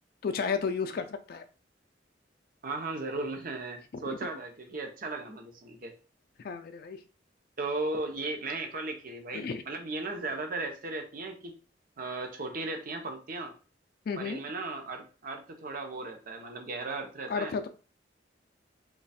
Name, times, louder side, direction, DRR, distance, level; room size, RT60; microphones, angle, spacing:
voice 1, 0.2-1.4 6.4-7.0 9.3-9.6 14.1-14.4 17.3-17.7, left 5 dB, 55° left, 8 dB, 0.3 m, -32 dB
voice 2, 2.6-5.9 7.6-11.6 12.0-13.5 14.2-17.6, right 3 dB, 50° right, 5 dB, 0.7 m, -36 dB
3.1 x 2.3 x 4.1 m, 0.37 s
head